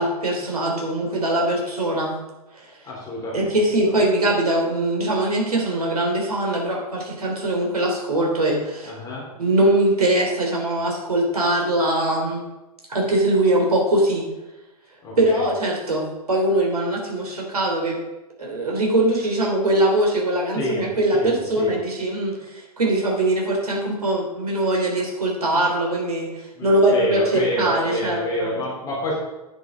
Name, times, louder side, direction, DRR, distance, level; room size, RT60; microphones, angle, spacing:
voice 1, 0.0-2.2 2.5-2.7 3.3-8.9 9.4-12.4 12.9-14.2 15.2-18.0 18.4-26.3 26.6-28.5, right 1 dB, 70° right, 0 dB, 3.5 m, -22 dB
voice 2, 2.8-3.5 3.9-4.0 8.8-9.2 15.0-15.5 20.5-21.8 26.6-29.2, left 1 dB, 20° left, -5 dB, 4.0 m, -28 dB
9.8 x 7.8 x 5.5 m, 1.0 s
figure-of-eight pair, 105°, 20 cm